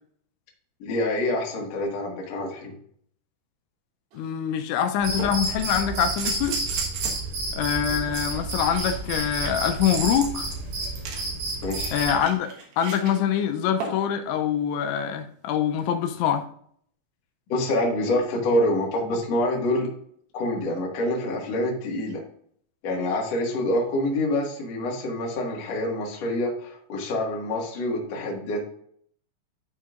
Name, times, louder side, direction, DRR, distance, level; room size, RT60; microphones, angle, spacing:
voice 1, 0.8-2.7 11.6-12.0 17.5-19.9 20.3-22.2 22.8-28.6, left 1 dB, 55° left, -2 dB, 1.9 m, -26 dB
sound 1, 4.1-4.2 5.2-7.3 8.1-13.1 13.8-14.1 15.8-15.9, right 5 dB, 65° right, 2.7 m, -35 dB
voice 2, 4.2-6.6 7.5-10.5 11.9-12.5 12.8-16.5, left 9 dB, 85° left, 6 dB, 2.9 m, -24 dB
Cricket, 5.0-12.2, right 2 dB, 80° right, 5.3 m, -31 dB
12.0 x 4.6 x 2.5 m, 0.64 s
omnidirectional pair, 5.3 m